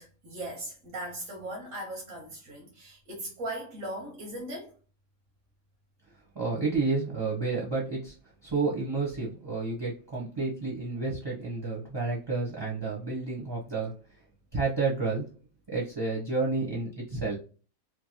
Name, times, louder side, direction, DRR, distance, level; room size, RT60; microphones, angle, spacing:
voice 1, 0.0-4.8, right 1 dB, 85° right, 1.4 m, -38 dB
voice 2, 6.3-8.1 8.4-13.9 14.5-15.3 15.7-17.4, right 3 dB, 20° right, 0.7 m, -30 dB
3.1 x 2.2 x 2.7 m
omnidirectional pair, 1.4 m